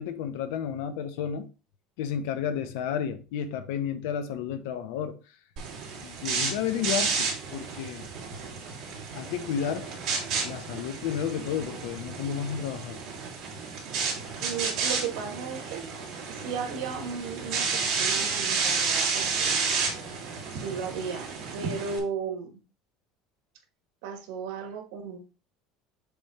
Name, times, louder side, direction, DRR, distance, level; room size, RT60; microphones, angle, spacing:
voice 1, 0.0-1.5 2.0-5.2 6.0-8.0 9.1-9.9 10.4-13.0, left 8 dB, 80° left, 0.9 m, -32 dB
sound 1, 5.6-22.0, right 5 dB, 45° right, 2.6 m, -31 dB
voice 2, 14.4-15.9 16.3-19.8 20.5-22.6 24.0-25.2, right 6 dB, 75° right, 1.7 m, -35 dB
7.0 x 3.4 x 4.2 m
cardioid pair, 175°, 0 cm